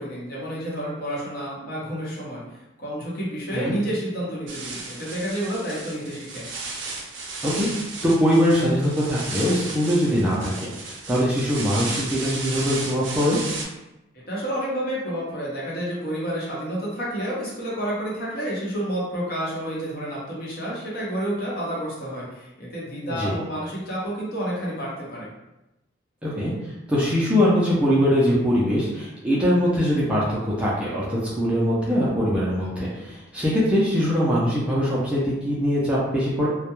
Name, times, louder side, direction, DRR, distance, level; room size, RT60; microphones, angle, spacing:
voice 1, 0.0-2.4 2.8-6.4 14.3-25.3, equal, 50° left, -6 dB, 0.8 m, -30 dB
sound 1, 4.5-13.6, right 3 dB, 70° right, 0.4 m, -34 dB
voice 2, 8.0-13.4 23.1-23.4 26.2-36.5, equal, 5° right, -7 dB, 0.4 m, -22 dB
2.2 x 2.1 x 2.9 m, 0.96 s
head